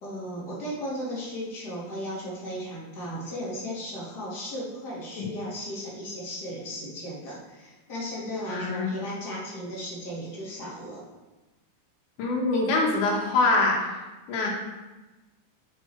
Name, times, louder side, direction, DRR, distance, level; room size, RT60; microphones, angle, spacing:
voice 1, 0.0-11.1, equal, 35° left, -6 dB, 2.4 m, -36 dB
voice 2, 8.5-8.9 12.2-13.9 14.3-14.5, left 3 dB, 90° left, -1 dB, 2.8 m, -24 dB
7.0 x 6.4 x 4.5 m, 1.1 s
omnidirectional pair, 3.5 m